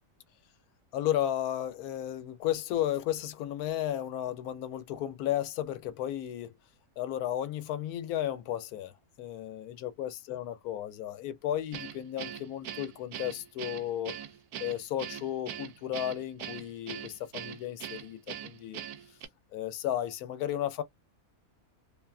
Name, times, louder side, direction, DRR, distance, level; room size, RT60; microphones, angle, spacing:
voice 1, 0.9-6.6 7.0-8.9 9.2-14.2 14.6-18.8 19.5-20.8, left 11 dB, 80° left, 1.1 m, -34 dB
Guitar, 11.7-19.3, right 10 dB, 85° right, 1.1 m, -41 dB
2.8 x 2.2 x 2.3 m
omnidirectional pair, 1.6 m